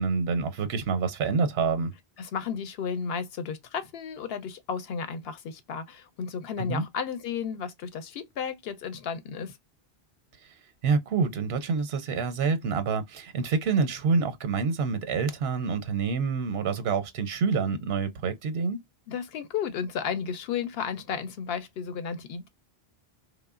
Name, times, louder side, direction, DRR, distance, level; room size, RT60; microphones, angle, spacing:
voice 1, 0.0-1.9 6.6-6.8 10.8-18.8, right 5 dB, 80° right, 0.8 m, -27 dB
voice 2, 2.2-9.6 19.1-22.5, left 6 dB, 75° left, 0.8 m, -33 dB
3.0 x 2.1 x 2.3 m
omnidirectional pair, 1.1 m